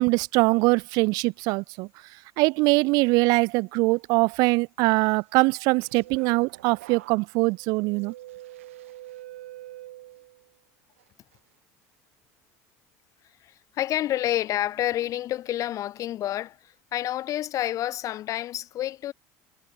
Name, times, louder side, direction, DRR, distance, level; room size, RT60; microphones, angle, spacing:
voice 1, 0.0-1.9 2.4-8.1, right 26 dB, 70° right, 0.7 m, -22 dB
sound 1, 5.5-10.5 11.0-11.4, right 15 dB, 90° right, 2.2 m, -45 dB
voice 2, 13.4-19.1, left 13 dB, 55° left, 6.4 m, -29 dB
supercardioid pair, 90°, 7 cm